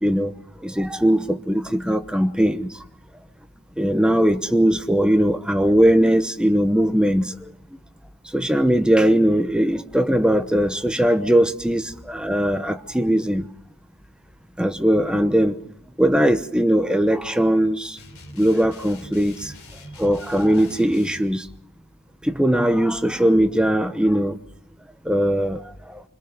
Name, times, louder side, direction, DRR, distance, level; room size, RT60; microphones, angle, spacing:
voice 1, 0.0-0.3 0.6-2.7 3.8-7.5 8.3-13.5 14.6-15.6 16.0-18.0 18.4-19.5 20.0-21.5 22.2-24.4 25.0-26.0, equal, 5° right, 0.9 m, -20 dB
sound 1, 18.0-21.2, left 1 dB, 75° left, 3.3 m, -43 dB
27.0 x 21.5 x 5.3 m
head